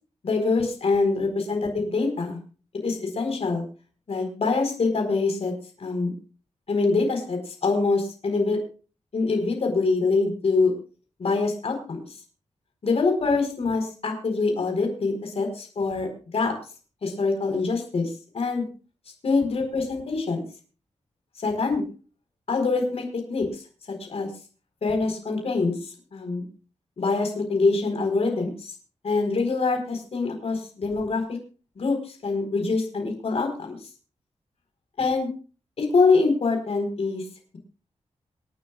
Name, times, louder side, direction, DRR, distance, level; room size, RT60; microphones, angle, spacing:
voice 1, 0.2-2.4 2.7-3.6 4.1-5.5 5.8-6.1 6.7-8.6 9.1-10.7 11.2-12.0 12.8-16.5 17.0-18.7 19.2-20.4 21.4-21.8 22.5-23.6 23.9-24.3 24.8-26.4 27.0-28.7 29.0-31.4 31.8-33.8 35.0-35.3 35.8-37.2, left 3 dB, 60° left, 3 dB, 4.5 m, -24 dB
27.0 x 10.0 x 2.4 m, 0.36 s
wide cardioid pair, 125°, 12 cm